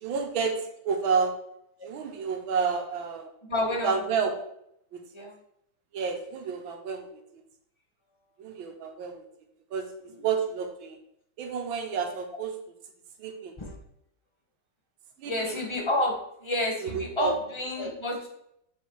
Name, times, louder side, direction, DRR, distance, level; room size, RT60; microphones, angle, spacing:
voice 1, 0.0-1.3 1.8-3.3 3.8-4.4 4.9-5.1 5.9-7.1 8.4-9.2 9.7-9.9 10.2-11.0 11.4-12.6 13.2-13.6 15.2-15.6 16.8-17.3, right 5 dB, 85° right, 5 dB, 1.7 m, -30 dB
voice 2, 3.4-4.0 5.1-5.3 10.1-10.2 13.6-13.8 15.2-18.3, left 1 dB, 20° left, 0 dB, 0.8 m, -30 dB
7.5 x 3.9 x 4.6 m, 0.76 s
omnidirectional pair, 2.1 m